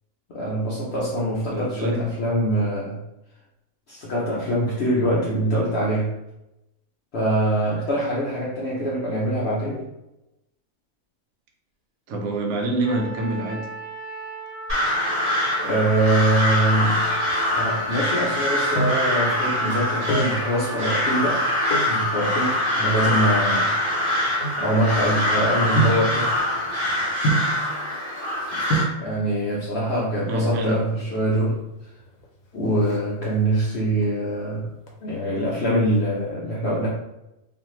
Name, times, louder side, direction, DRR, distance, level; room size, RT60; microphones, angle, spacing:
voice 1, 0.3-3.0 3.9-6.1 7.1-9.8 15.6-17.1 17.5-21.4 21.9-23.7 24.6-26.3 29.0-31.6 32.5-34.7 35.0-36.9, right 1 dB, 60° left, -6 dB, 0.8 m, -24 dB
voice 2, 1.5-2.1 12.1-13.7 30.3-30.8, right 1 dB, 80° right, 1 dB, 1.0 m, -26 dB
Trumpet, 12.8-22.3, right 2 dB, 20° left, 0.5 m, -35 dB
Crow, 14.7-28.9, left 1 dB, 30° right, 0.8 m, -24 dB
sound 1, 18.5-19.2 19.9-20.4 21.6-22.0 22.7-25.1 25.8-26.2 27.2-27.7 28.4-28.5 28.7-29.1 30.2-30.7 31.0-31.1 31.3-31.5 31.8-32.2 32.5-33.6 34.0-34.4 34.8-36.0 36.2-36.3, right 2 dB, 80° left, 1.1 m, -27 dB
2.5 x 2.5 x 3.0 m, 0.90 s
omnidirectional pair, 1.5 m